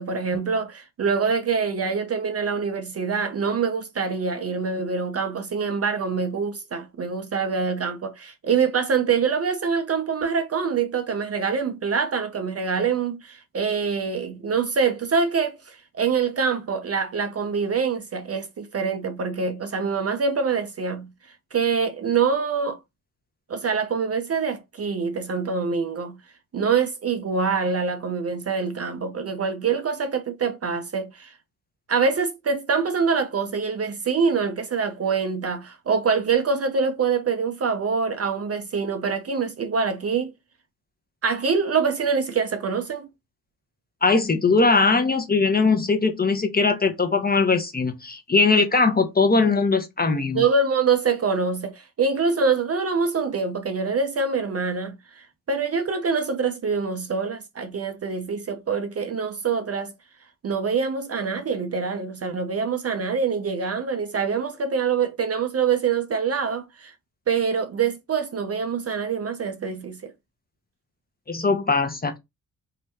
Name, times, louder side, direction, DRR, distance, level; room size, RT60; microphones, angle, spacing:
voice 1, 0.0-21.1 21.5-22.8 23.5-26.2 26.5-31.3 31.9-40.3 41.2-43.1 50.3-59.9 60.4-66.9 67.3-70.1, right 5 dB, 35° right, 0.6 m, -25 dB
voice 2, 44.0-50.5 71.3-72.2, left 4 dB, 20° left, 0.7 m, -20 dB
2.7 x 2.1 x 3.3 m
hypercardioid pair, 50°, 46 cm